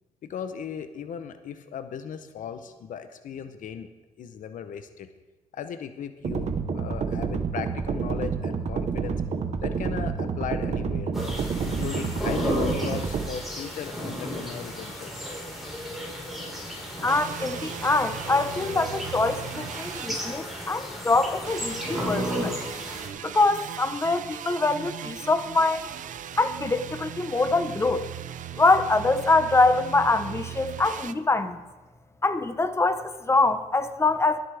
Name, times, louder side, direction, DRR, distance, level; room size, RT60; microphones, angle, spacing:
voice 1, 0.2-3.9 4.2-5.1 5.5-9.2 9.6-11.1 11.6-15.3, left 7 dB, 80° left, 10 dB, 0.7 m, -37 dB
sound 1, 6.2-13.3, right 5 dB, 60° right, 1.0 m, -29 dB
sound 2, 11.1-23.1, equal, ahead, 4.4 m, -34 dB
voice 2, 17.0-22.5 23.2-25.9 26.4-28.1 28.6-31.6 32.2-34.4, left 3 dB, 20° left, 9 dB, 0.9 m, -24 dB
sound 3, 17.1-20.8 21.4-31.1, right 10 dB, 75° right, 0.5 m, -38 dB
23.0 x 7.9 x 3.4 m, 1.2 s
cardioid pair, 95°, 13 cm